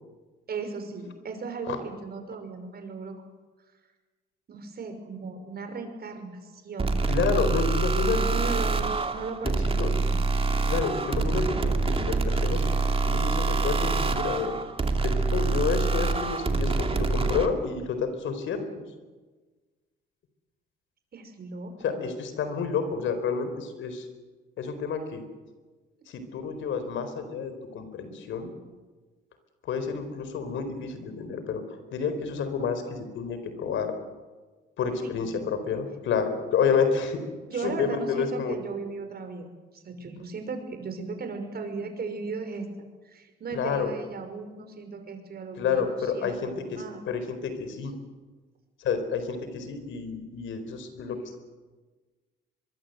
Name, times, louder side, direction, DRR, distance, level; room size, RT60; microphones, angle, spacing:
voice 1, 0.5-3.1 4.5-6.9 8.1-10.2 21.1-22.0 35.0-35.3 37.5-39.5 39.7-42.7 43.1-47.0, right 4 dB, 50° right, 6 dB, 5.6 m, -37 dB
sound 1, 6.8-17.5, right 3 dB, 30° right, 2.6 m, -26 dB
voice 2, 7.1-8.2 9.8-10.0 10.7-12.6 13.0-14.6 15.0-18.9 21.8-24.1 24.6-25.2 26.1-28.5 29.6-31.6 31.9-33.9 34.8-37.2 37.6-38.6 43.5-43.9 45.6-47.9 48.8-51.4, left 6 dB, 75° left, 9 dB, 4.4 m, -29 dB
23.5 x 23.0 x 8.1 m, 1.3 s
cardioid pair, 90°, 20 cm